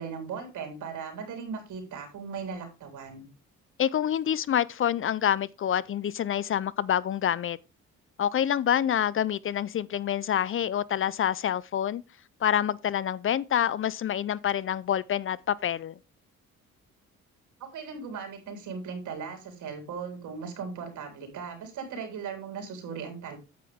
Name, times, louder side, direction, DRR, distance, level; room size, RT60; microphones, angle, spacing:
voice 1, 0.0-3.3 17.6-23.4, right 5 dB, 80° right, 3.8 m, -38 dB
voice 2, 3.8-7.6 8.2-12.0 12.4-15.9, left 10 dB, 45° left, 0.5 m, -27 dB
9.3 x 8.2 x 3.6 m
cardioid pair, 90°, 30 cm